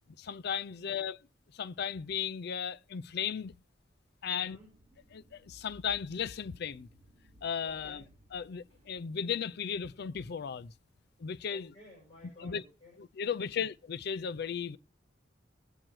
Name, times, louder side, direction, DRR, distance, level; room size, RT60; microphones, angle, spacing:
voice 1, 0.2-1.2 1.5-3.5 4.2-4.6 5.1-6.9 7.4-8.0 8.3-10.7 11.2-11.7 12.4-12.6 13.0-14.8, left 7 dB, 60° left, 0.4 m, -35 dB
voice 2, 0.7-1.0 4.3-4.7 7.6-8.1 11.5-13.0 13.3-13.7, left 2 dB, 30° left, 6.8 m, -56 dB
sound 1, 2.4-11.4, equal, 40° right, 4.5 m, -61 dB
21.5 x 8.8 x 3.1 m
head